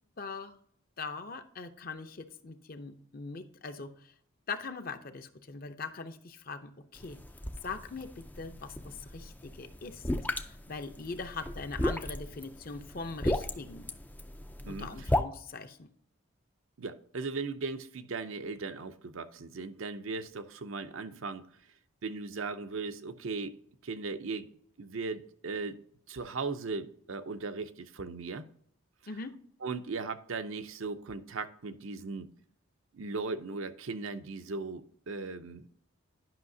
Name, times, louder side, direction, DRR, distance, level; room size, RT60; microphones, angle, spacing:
voice 1, 0.2-0.6 1.0-4.1 4.5-7.2 7.6-10.0 10.4-13.9 14.7-15.9 29.1-29.3, left 4 dB, 45° left, 0.7 m, -41 dB
sound 1, 7.0-15.2, left 1 dB, 10° left, 0.3 m, -36 dB
voice 2, 16.8-21.5 22.0-23.6 23.8-24.5 24.8-25.8 26.1-28.5 29.6-32.3 32.9-35.7, right 4 dB, 70° right, 0.6 m, -37 dB
10.5 x 5.7 x 2.7 m
head